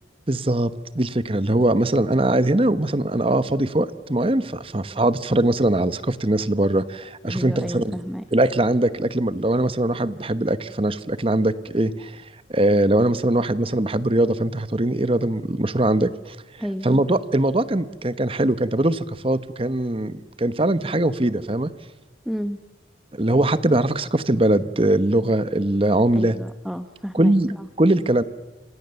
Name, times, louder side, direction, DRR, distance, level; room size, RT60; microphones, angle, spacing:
voice 1, 0.3-8.0 8.3-12.2 12.5-16.4 16.8-21.7 23.1-26.3 27.2-27.5 27.8-28.2, right 1 dB, 30° right, 13 dB, 1.1 m, -21 dB
voice 2, 7.3-8.2 16.6-16.9 22.2-22.6 26.1-27.7, equal, ahead, 8 dB, 0.9 m, -31 dB
28.5 x 26.0 x 7.0 m, 1.2 s
head